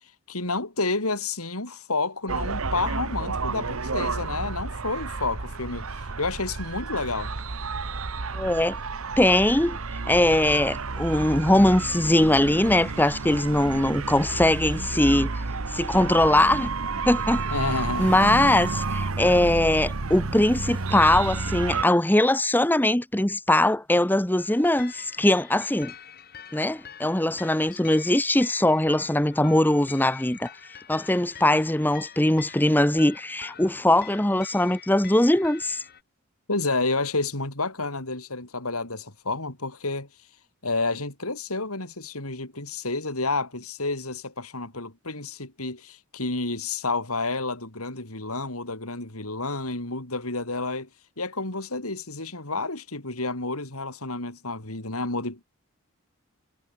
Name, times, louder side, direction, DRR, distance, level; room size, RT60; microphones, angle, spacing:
voice 1, 0.3-5.9 6.2-7.3 17.5-18.1 27.7-27.8 36.5-40.1 40.6-50.9 51.2-55.4, left 3 dB, 85° left, 5.4 m, -30 dB
sound 1, 2.3-21.8, right 3 dB, 75° right, 1.2 m, -31 dB
voice 2, 8.3-8.8 9.2-9.8 10.1-15.3 15.7-16.7 17.1-17.4 18.0-25.9 26.5-30.5 30.9-35.8, left 1 dB, 10° left, 0.9 m, -21 dB
sound 2, 24.4-36.0, left 8 dB, 45° left, 5.2 m, -45 dB
head